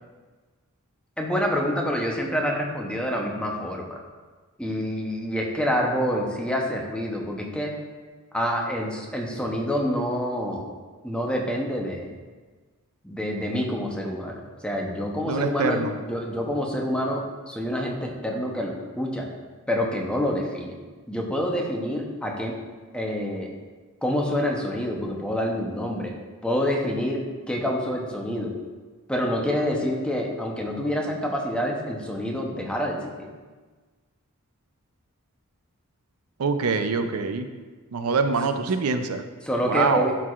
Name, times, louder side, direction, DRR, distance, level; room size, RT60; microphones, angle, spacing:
voice 1, 1.2-4.0 4.6-7.7 8.3-10.7 11.0-12.1 13.0-19.3 19.7-20.8 21.1-22.6 22.9-23.5 24.0-26.1 26.4-28.5 29.1-33.3 39.4-40.1, equal, 5° left, 0 dB, 0.8 m, -27 dB
voice 2, 15.2-15.9 36.4-37.5 37.9-39.2 39.7-40.2, right 4 dB, 80° right, 8 dB, 0.5 m, -24 dB
12.0 x 4.7 x 2.4 m, 1.4 s
head